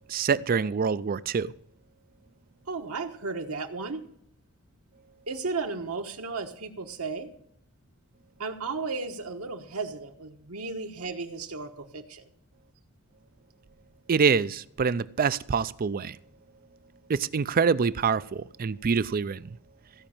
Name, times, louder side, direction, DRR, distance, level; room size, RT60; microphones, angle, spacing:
voice 1, 0.1-1.5 14.1-16.2 17.1-19.6, right 5 dB, 40° right, 0.4 m, -26 dB
voice 2, 2.7-4.0 5.3-7.3 8.4-12.2, right 4 dB, 75° right, 1.3 m, -34 dB
16.0 x 5.4 x 8.7 m
head